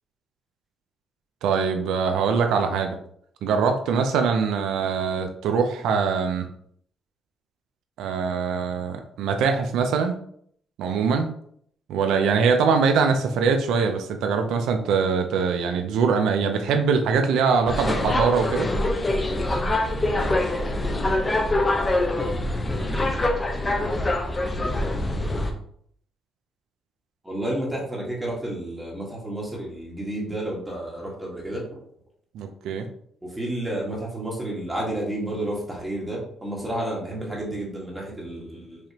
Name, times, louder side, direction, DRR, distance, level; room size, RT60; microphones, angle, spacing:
voice 1, 1.4-3.0 3.4-6.5 8.0-10.2 10.8-11.3 11.9-18.7 32.3-32.9, right 5 dB, 85° right, 6 dB, 0.5 m, -23 dB
sound 1, 17.7-25.5, left 1 dB, 25° left, 0.7 m, -24 dB
voice 2, 27.2-31.7 33.2-38.8, right 1 dB, 15° right, -3 dB, 1.5 m, -31 dB
4.8 x 3.0 x 2.8 m, 0.64 s
cardioid pair, 90°, 0 cm